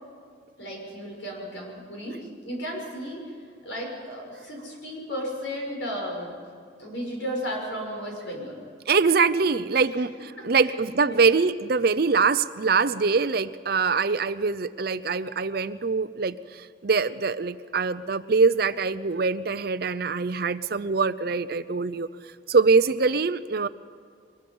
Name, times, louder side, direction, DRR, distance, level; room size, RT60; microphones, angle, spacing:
voice 1, 0.6-3.3 3.6-6.4 6.8-8.6 9.7-9.8 10.6-11.3, equal, 75° left, 0 dB, 6.4 m, -34 dB
voice 2, 8.9-16.4 16.8-22.1 22.5-23.7, right 4 dB, 50° right, 14 dB, 0.6 m, -23 dB
23.0 x 21.5 x 5.5 m, 2.1 s
head